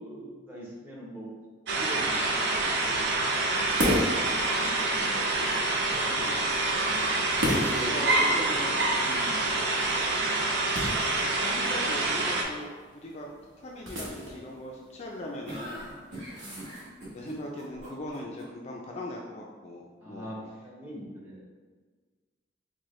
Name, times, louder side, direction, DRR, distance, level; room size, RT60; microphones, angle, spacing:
voice 1, 0.0-1.3 1.7-3.3 4.5-5.5 5.7-6.8 7.6-8.6 9.0-9.3 16.3-16.6 20.0-21.5, equal, 10° right, -6 dB, 0.8 m, -42 dB
sound 1, 1.7-12.4, right 2 dB, 60° right, 0.5 m, -27 dB
sound 2, 3.7-17.2, left 1 dB, 80° right, 1.0 m, -36 dB
voice 2, 7.9-8.5 11.2-13.3 13.6-16.3 17.1-20.3, left 1 dB, 35° left, -1 dB, 0.3 m, -39 dB
sound 3, 15.5-18.4, equal, 40° right, 1.4 m, -42 dB
4.6 x 2.1 x 3.0 m, 1.5 s
head